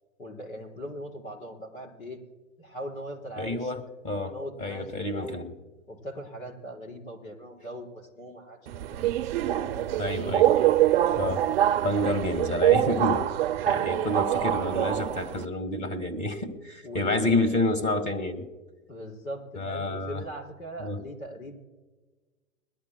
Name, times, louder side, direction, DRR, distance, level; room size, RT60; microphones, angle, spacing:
voice 1, 0.2-2.2 2.6-3.7 4.3-5.4 5.9-9.0 9.5-10.4 14.3-14.8 16.8-17.6 18.9-21.5, right 1 dB, 90° left, 2 dB, 4.7 m, -40 dB
voice 2, 3.4-4.3 4.6-5.5 10.0-10.5 11.1-11.4 11.8-13.3 13.7-18.4 19.6-20.2 20.8-21.0, left 1 dB, 20° left, 6 dB, 1.8 m, -29 dB
Subway metro underground, 8.7-15.4, right 12 dB, 50° right, 0.6 m, -25 dB
22.5 x 13.0 x 2.2 m, 1.2 s
hypercardioid pair, 135°, 40 cm